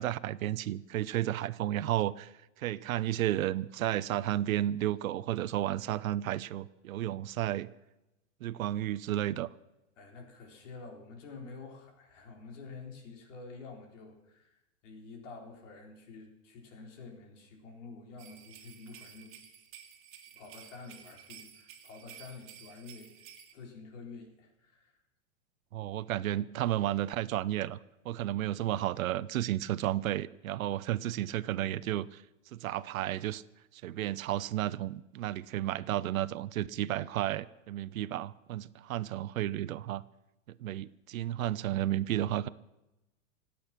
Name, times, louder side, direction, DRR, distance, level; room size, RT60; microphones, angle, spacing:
voice 1, 0.0-2.3 2.6-7.7 8.4-9.5 25.7-27.8 28.0-32.2 32.5-33.4 33.7-40.0 40.6-42.5, right 13 dB, 90° right, 16 dB, 0.8 m, -32 dB
voice 2, 10.0-19.4 20.3-23.1 23.5-25.0, left 4 dB, 65° left, 3 dB, 4.0 m, -49 dB
sound 1, 18.2-23.5, right 9 dB, 30° right, 2.4 m, -53 dB
26.0 x 8.8 x 5.9 m, 0.97 s
supercardioid pair, 150°, 40 cm